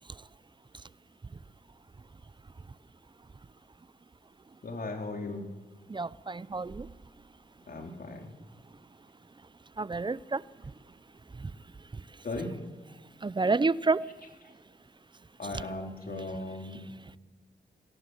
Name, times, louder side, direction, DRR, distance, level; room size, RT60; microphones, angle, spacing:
voice 1, 4.6-5.4 7.7-8.3 12.2-12.5 15.4-16.8, left 2 dB, 55° left, 3 dB, 3.4 m, -37 dB
voice 2, 5.9-6.9 9.8-10.7 11.3-11.5 11.9-12.3 13.2-14.1 15.4-15.7 16.2-16.3 16.6-16.8, right 3 dB, 25° right, 19 dB, 0.7 m, -31 dB
23.5 x 17.0 x 8.0 m, 1.2 s
cardioid pair, 70°, 18 cm